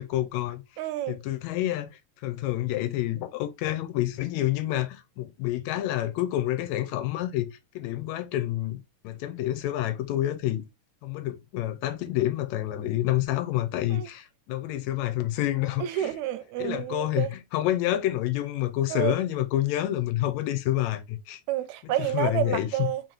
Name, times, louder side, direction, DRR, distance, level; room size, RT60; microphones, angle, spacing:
voice 1, 0.0-0.6 1.1-1.9 2.2-10.6 11.0-16.1 16.6-21.4 21.8-22.9, left 14 dB, 80° left, 1.9 m, -28 dB
voice 2, 0.8-1.2 13.9-14.1 15.8-17.3 18.9-19.2 21.5-23.0, right 13 dB, 80° right, 1.8 m, -29 dB
4.4 x 4.0 x 3.0 m
omnidirectional pair, 3.4 m